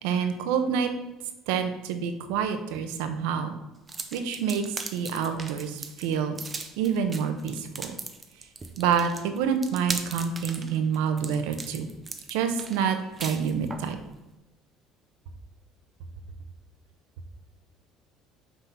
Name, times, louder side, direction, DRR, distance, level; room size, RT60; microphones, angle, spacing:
voice 1, 0.0-0.9 1.5-3.6 4.1-6.4 6.8-8.0 8.8-11.9 12.3-14.0, right 7 dB, 90° right, 7 dB, 0.8 m, -27 dB
sound 1, 3.9-13.9, right 4 dB, 20° right, 0.7 m, -38 dB
6.1 x 3.9 x 5.7 m, 1.0 s
cardioid pair, 125°, 0 cm